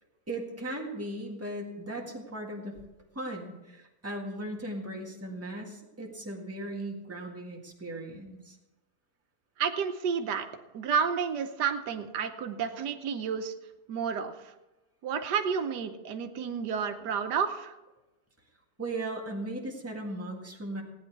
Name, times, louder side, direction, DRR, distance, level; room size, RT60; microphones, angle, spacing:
voice 1, 0.3-2.8 3.1-8.6 18.8-20.8, right 1 dB, 10° right, -1 dB, 1.7 m, -37 dB
voice 2, 9.6-10.5 10.7-13.5 13.9-14.3 15.0-17.7, right 6 dB, 90° right, 7 dB, 1.5 m, -30 dB
16.0 x 9.6 x 4.6 m, 1.0 s
omnidirectional pair, 1.7 m